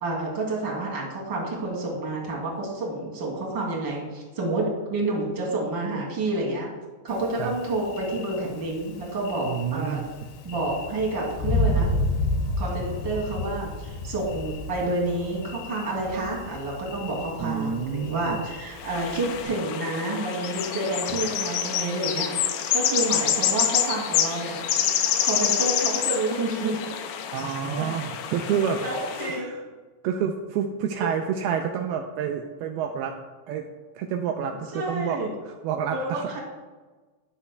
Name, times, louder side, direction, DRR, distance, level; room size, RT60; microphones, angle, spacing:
voice 1, 0.0-6.7 7.0-10.0 10.4-11.9 12.6-22.3 22.7-24.6 25.2-26.9 27.8-27.9 28.8-29.5 31.0-31.1 34.7-35.3 35.9-36.4, right 2 dB, 30° right, -3 dB, 2.6 m, -29 dB
Thunder, 7.1-19.4, left 1 dB, 70° left, 3.1 m, -32 dB
voice 2, 9.4-10.0 17.4-18.4 27.3-28.8 29.2-29.6 30.0-33.2 33.5-33.7 34.0-36.4, right 8 dB, 85° right, 4 dB, 2.3 m, -29 dB
sound 1, 18.8-29.4, left 9 dB, 90° left, 3.1 m, -27 dB
21.5 x 7.2 x 2.3 m, 1.3 s
omnidirectional pair, 5.0 m